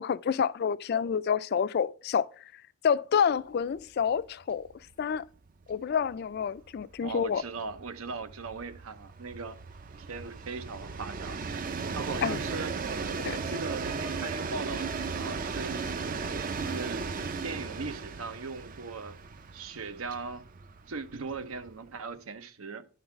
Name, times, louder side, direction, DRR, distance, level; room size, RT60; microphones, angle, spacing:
voice 1, 0.0-2.3 2.8-4.7 5.0-5.2 5.7-7.4 12.2-12.4 13.2-13.3, left 7 dB, 50° left, 0.3 m, -28 dB
Train, 3.7-3.9 4.2-4.3 4.6-22.0, right 4 dB, 40° right, 0.5 m, -36 dB
voice 2, 7.0-9.6 10.0-11.4 11.9-12.8 13.3-15.9 16.6-17.1 17.4-19.2 19.5-20.5 20.9-22.9, right 4 dB, 75° right, 0.7 m, -39 dB
10.5 x 3.9 x 5.7 m
head